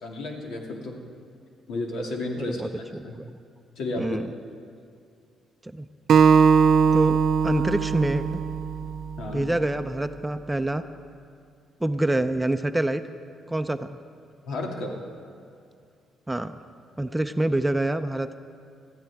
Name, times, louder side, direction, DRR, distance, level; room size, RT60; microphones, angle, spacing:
voice 1, 0.0-1.0 1.7-2.6 3.0-3.2 3.8-4.2 9.2-9.5 14.5-14.9, left 2 dB, 80° left, 0 dB, 2.2 m, -32 dB
voice 2, 2.4-3.4 4.0-4.3 5.6-5.9 6.9-8.4 9.3-10.8 11.8-13.0 13.5-14.0 16.3-16.6 17.0-18.4, right 1 dB, 10° right, 9 dB, 0.5 m, -26 dB
Acoustic guitar, 6.1-9.4, right 6 dB, 65° right, 0.4 m, -20 dB
20.5 x 13.5 x 3.5 m, 2.3 s
cardioid pair, 90°, 0 cm